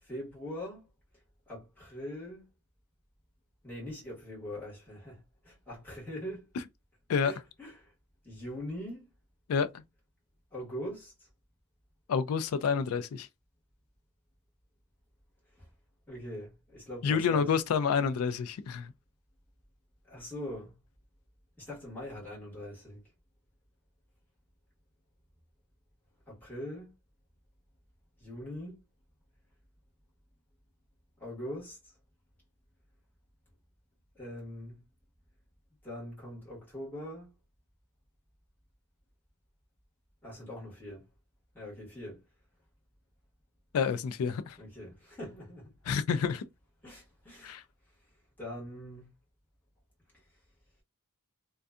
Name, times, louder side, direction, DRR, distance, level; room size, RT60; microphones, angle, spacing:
voice 1, 0.0-0.9 1.5-2.5 3.6-6.5 7.2-7.9 8.2-9.1 10.5-11.3 15.5-15.7 16.1-17.5 20.1-20.7 21.6-23.0 26.3-27.0 28.2-28.8 31.2-31.9 34.1-34.8 35.8-37.3 40.2-41.0 41.5-42.2 44.6-45.7 46.8-47.6 48.4-49.1, left 1 dB, 10° left, 1.3 m, -42 dB
voice 2, 12.1-13.3 17.0-18.9 43.7-44.6 45.9-46.4 47.4-47.6, left 6 dB, 70° left, 0.3 m, -28 dB
2.6 x 2.2 x 2.3 m
head